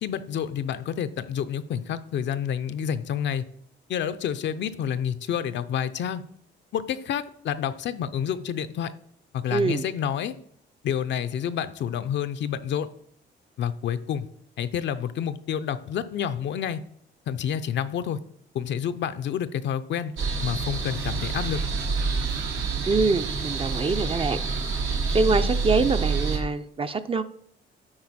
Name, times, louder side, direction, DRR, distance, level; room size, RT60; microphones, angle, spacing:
voice 1, 0.0-3.4 3.9-6.2 6.7-8.9 9.3-10.4 10.8-12.9 13.6-14.3 14.6-16.8 17.3-18.2 18.5-20.1 20.4-21.6, left 9 dB, 65° left, 11 dB, 0.5 m, -29 dB
voice 2, 9.5-9.8 22.8-24.4 25.1-27.2, right 4 dB, 30° right, 10 dB, 0.5 m, -24 dB
sound 1, 20.2-26.4, right 4 dB, 85° right, 1.5 m, -27 dB
8.7 x 4.4 x 4.2 m, 0.67 s
cardioid pair, 90°, 20 cm